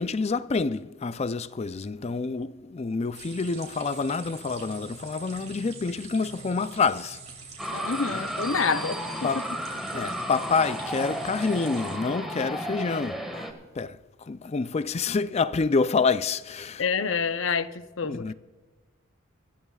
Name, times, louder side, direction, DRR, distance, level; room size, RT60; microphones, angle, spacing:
voice 1, 0.0-7.2 8.1-8.2 9.2-9.5 9.9-13.5 13.7-16.8 18.1-18.3, left 4 dB, 30° left, 0.4 m, -27 dB
sound 1, 3.1-12.0, right 4 dB, 35° right, 2.9 m, -44 dB
sound 2, 7.6-13.5, equal, ahead, 1.6 m, -33 dB
voice 2, 7.7-9.0 16.8-18.2, left 5 dB, 65° left, 0.7 m, -27 dB
25.5 x 14.0 x 2.4 m
head